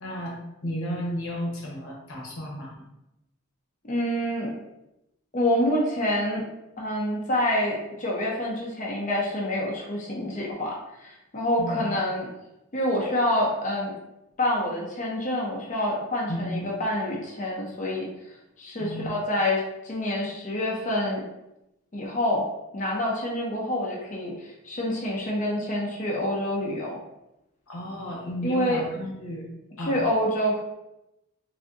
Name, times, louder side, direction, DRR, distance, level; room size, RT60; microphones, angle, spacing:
voice 1, 0.0-2.9 11.6-11.8 16.3-16.7 18.8-19.1 27.7-29.4 29.8-30.0, equal, 90° left, -1 dB, 0.8 m, -33 dB
voice 2, 3.8-4.5 5.3-6.5 6.8-12.3 12.7-13.9 14.4-18.1 18.6-21.2 21.9-22.4 22.7-27.0 28.4-28.8 29.8-30.6, left 1 dB, 35° left, -3 dB, 0.5 m, -27 dB
3.4 x 2.6 x 2.5 m, 0.90 s
head